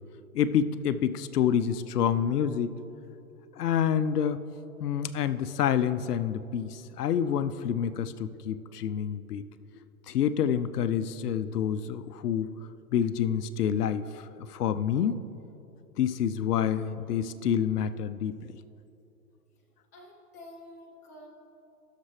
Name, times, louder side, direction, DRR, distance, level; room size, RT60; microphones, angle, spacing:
voice 1, 0.3-2.8 3.5-4.4 4.8-9.4 10.1-12.5 12.9-15.2 16.0-18.4, left 8 dB, 75° left, 13 dB, 0.6 m, -28 dB
voice 2, 19.9-21.3, left 1 dB, 15° left, -4 dB, 0.3 m, -49 dB
16.5 x 6.7 x 3.2 m, 2.8 s
hypercardioid pair, 135°, 47 cm